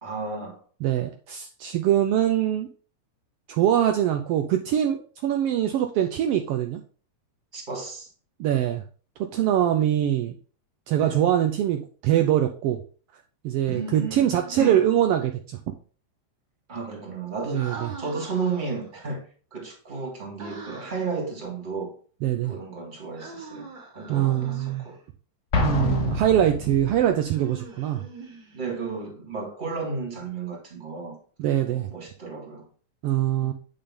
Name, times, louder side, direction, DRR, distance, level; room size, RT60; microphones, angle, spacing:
voice 1, 0.0-0.6 7.5-8.1 11.0-11.2 13.7-14.3 14.6-14.8 16.7-19.2 19.5-21.9 22.4-23.7 23.9-25.0 28.5-31.2 31.7-32.7 33.4-33.5, right 4 dB, 20° right, 1.8 m, -33 dB
voice 2, 0.8-2.7 3.5-6.8 8.4-8.8 9.3-10.3 10.9-12.8 13.4-15.7 17.5-17.9 22.2-22.5 24.1-24.9 25.6-28.0 31.4-31.9 33.0-33.5, right 11 dB, 80° right, 1.3 m, -23 dB
Human voice, 14.2-15.1 17.5-18.9 20.4-21.2 23.2-25.0 27.2-28.8, right 4 dB, 45° right, 2.5 m, -42 dB
Explosion, 25.5-27.1, left 3 dB, 80° left, 0.6 m, -27 dB
8.8 x 5.2 x 3.6 m
omnidirectional pair, 3.4 m